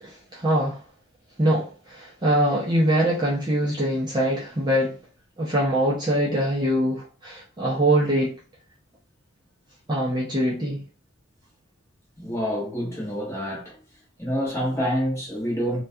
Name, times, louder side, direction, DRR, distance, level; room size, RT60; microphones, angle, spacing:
voice 1, 0.0-0.8 1.4-5.0 5.4-8.3 9.9-10.8, right 1 dB, 20° right, 0.5 m, -23 dB
voice 2, 12.2-13.8 14.2-15.8, equal, 10° left, 0.9 m, -27 dB
2.3 x 2.2 x 2.6 m
head